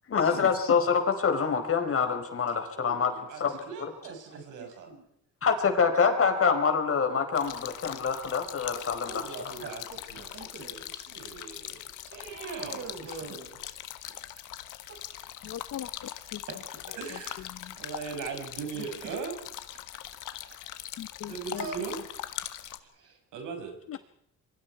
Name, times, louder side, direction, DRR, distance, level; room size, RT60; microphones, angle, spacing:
voice 1, 0.1-3.6 5.4-9.3, left 6 dB, 45° left, 6 dB, 4.8 m, -26 dB
voice 2, 2.8-3.4 3.7-4.9 9.1-9.8 10.1-10.3 10.7-13.2 17.0-17.4 17.8-19.4 21.3-22.0 23.3-23.8, right 5 dB, 85° right, 4 dB, 6.0 m, -39 dB
voice 3, 4.0-5.1 9.6-10.8 12.2-13.6 14.9-15.0 15.4-15.6 16.5-16.9 18.7-19.3 20.5-20.6 21.5-21.8 22.9-23.2, right 4 dB, 50° right, 3 dB, 7.5 m, -44 dB
sound 1, 7.4-22.8, left 12 dB, 85° left, 1.7 m, -41 dB
voice 4, 15.4-16.4 17.5-17.7 21.0-21.7 23.9-24.0, left 10 dB, 60° left, 16 dB, 1.1 m, -40 dB
27.0 x 23.5 x 4.8 m, 0.74 s
cardioid pair, 90°, 30 cm